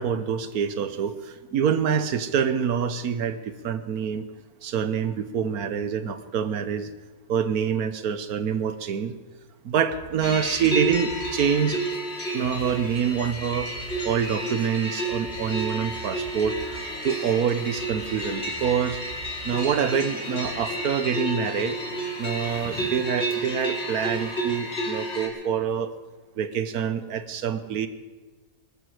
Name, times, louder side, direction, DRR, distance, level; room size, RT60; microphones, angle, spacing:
voice 1, 0.0-4.2 4.6-6.9 7.3-9.1 9.6-11.8 12.3-13.7 14.0-19.0 19.4-21.8 22.2-25.9 26.4-27.9, right 7 dB, 80° right, 12 dB, 1.4 m, -26 dB
sound 1, 9.9-20.6, right 4 dB, 45° right, 1.6 m, -46 dB
sound 2, 10.2-25.3, right 1 dB, 45° left, 3.0 m, -31 dB
19.5 x 14.0 x 4.9 m, 1.2 s
omnidirectional pair, 1.6 m